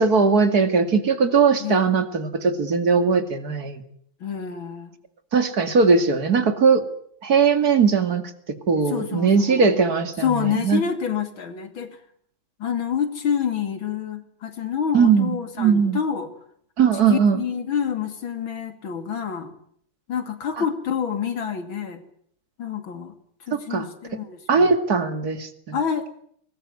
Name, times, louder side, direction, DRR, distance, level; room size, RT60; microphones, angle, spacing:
voice 1, 0.0-3.8 5.3-6.8 7.2-8.2 8.7-10.2 10.6-10.8 14.9-16.0 16.8-17.4 23.5-23.9 24.5-25.8, right 5 dB, 45° right, 9 dB, 2.7 m, -19 dB
voice 2, 1.6-1.9 3.0-3.1 4.2-5.0 8.8-9.7 10.2-12.0 12.6-16.3 17.1-19.5 20.1-22.0 22.6-23.2 23.5-24.7 25.7-26.1, left 7 dB, 65° left, 8 dB, 3.3 m, -27 dB
23.0 x 20.0 x 9.7 m, 0.65 s
omnidirectional pair, 2.4 m